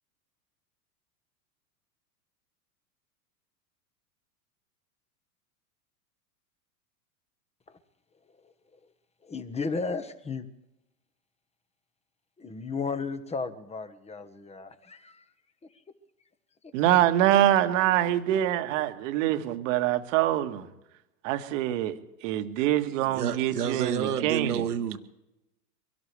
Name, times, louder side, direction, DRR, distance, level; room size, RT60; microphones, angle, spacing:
voice 1, 9.2-10.4 12.4-15.2, left 4 dB, 15° left, 1.3 m, -34 dB
voice 2, 16.7-20.7 21.2-21.9 22.2-24.7, right 12 dB, 55° right, 1.7 m, -25 dB
voice 3, 23.1-25.0, right 8 dB, 80° right, 1.7 m, -29 dB
24.0 x 17.5 x 3.4 m
hypercardioid pair, 100°, 45 cm